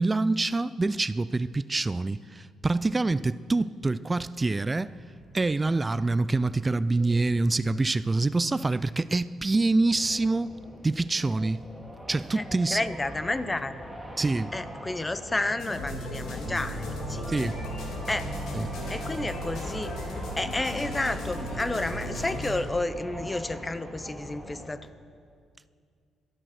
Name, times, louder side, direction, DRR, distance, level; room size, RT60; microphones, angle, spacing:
voice 1, 0.0-4.9 5.3-10.5 10.8-11.6 12.1-12.8 14.2-14.5 17.3-17.6 18.5-18.7, right 3 dB, 20° right, 0.3 m, -26 dB
sound 1, 4.8-24.7, equal, ahead, 2.0 m, -43 dB
voice 2, 12.7-13.8 14.5-17.3 18.1-18.3 18.9-19.9 20.4-24.9, left 2 dB, 15° left, 0.6 m, -31 dB
sound 2, 15.6-22.6, equal, 85° left, 3.1 m, -35 dB
12.5 x 12.0 x 6.5 m
cardioid pair, 90°, 0 cm